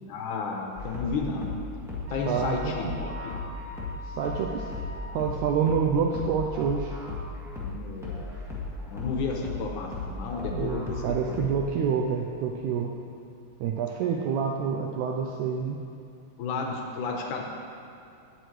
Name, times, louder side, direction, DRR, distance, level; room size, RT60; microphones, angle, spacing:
voice 1, 0.1-1.6 2.1-3.3 7.6-8.3 8.8-11.4 16.4-17.4, left 4 dB, 75° left, 1 dB, 2.1 m, -32 dB
sound 1, 0.7-11.8, left 3 dB, ahead, 0.7 m, -36 dB
sound 2, 2.1-5.3, left 2 dB, 70° right, 1.3 m, -43 dB
voice 2, 2.3-2.9 4.0-4.7 5.1-6.9 10.5-12.9 13.6-15.8, right 6 dB, 90° right, 1 dB, 1.7 m, -27 dB
17.0 x 6.4 x 3.2 m, 2.6 s
omnidirectional pair, 3.9 m